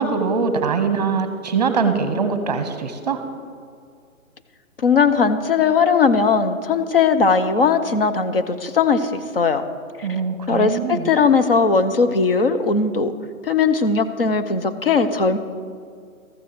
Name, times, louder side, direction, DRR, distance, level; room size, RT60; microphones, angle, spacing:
voice 1, 0.0-3.2 10.0-11.1, right 5 dB, 30° right, 9 dB, 0.9 m, -22 dB
voice 2, 4.8-9.6 10.0-10.1 10.5-13.1 13.5-15.4, left 5 dB, 45° left, 10 dB, 0.8 m, -18 dB
14.0 x 7.3 x 6.7 m, 2.2 s
hypercardioid pair, 165°, 42 cm